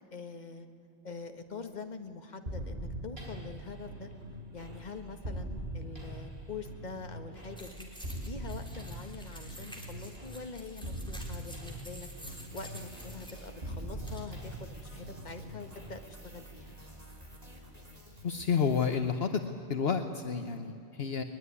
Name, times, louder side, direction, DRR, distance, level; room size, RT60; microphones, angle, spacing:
voice 1, 0.1-0.7 1.0-4.1 4.5-7.9 8.2-12.1 12.5-16.8, left 4 dB, 40° left, 6 dB, 1.6 m, -44 dB
sound 1, 2.5-18.1, right 1 dB, 60° right, 6.0 m, -43 dB
sound 2, 7.6-15.1, equal, 5° left, 3.8 m, -50 dB
sound 3, 12.1-19.6, equal, 35° right, 3.4 m, -54 dB
voice 2, 18.2-19.3 19.7-21.2, left 6 dB, 65° left, 7 dB, 1.2 m, -30 dB
21.5 x 21.5 x 9.7 m, 2.7 s
omnidirectional pair, 1.1 m